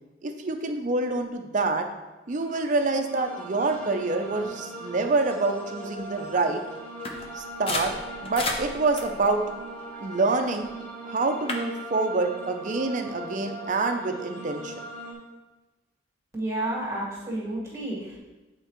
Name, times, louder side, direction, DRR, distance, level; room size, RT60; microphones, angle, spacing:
voice 1, 0.2-1.9 2.3-6.6 7.3-7.9 8.2-9.4 10.0-10.7 11.0-14.7, right 3 dB, 45° right, 5 dB, 0.5 m, -26 dB
sound 1, 2.3-15.1, right 1 dB, 15° left, 1.8 m, -40 dB
sound 2, 7.0-10.7 11.1-11.6, left 2 dB, 30° left, 0.6 m, -35 dB
voice 2, 16.3-18.2, right 1 dB, 15° right, -5 dB, 1.6 m, -31 dB
8.7 x 4.4 x 3.1 m, 1.1 s
head